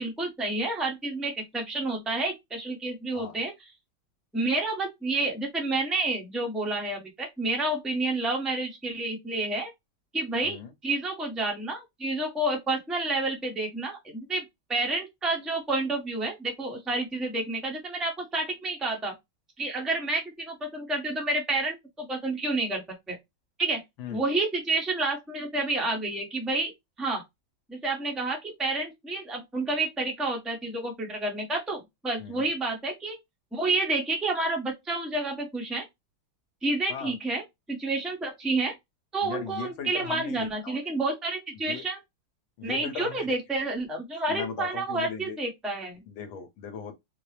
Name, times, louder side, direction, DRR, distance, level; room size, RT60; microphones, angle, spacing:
voice 1, 0.0-3.5 4.3-9.7 10.1-14.4 14.7-19.1 19.6-22.8 23.1-23.2 23.6-23.8 24.1-26.7 27.0-27.2 27.7-33.1 33.5-35.8 36.6-37.4 37.7-38.7 39.1-42.0 42.6-46.0, right 2 dB, ahead, 0.5 m, -29 dB
voice 2, 39.2-40.8 41.5-41.8 42.6-43.4 44.3-45.4 46.1-46.9, left 7 dB, 70° left, 1.6 m, -38 dB
4.4 x 2.0 x 3.2 m
omnidirectional pair, 2.3 m